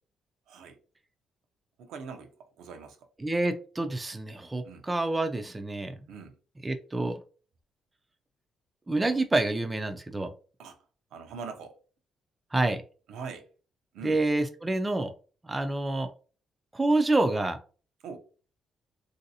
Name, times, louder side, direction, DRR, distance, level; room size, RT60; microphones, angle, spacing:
voice 1, 0.5-0.8 1.8-3.0 4.6-4.9 6.1-6.4 10.6-10.8 11.1-11.7 13.1-13.5 13.9-14.2 18.0-18.2, right 5 dB, 85° right, 5 dB, 0.7 m, -42 dB
voice 2, 3.2-6.1 6.6-7.2 8.9-10.3 12.5-12.8 14.0-15.1 15.4-16.1 16.7-17.6, right 2 dB, 20° right, 7 dB, 0.4 m, -27 dB
3.1 x 2.7 x 2.7 m, 0.39 s
cardioid pair, 90°, 0 cm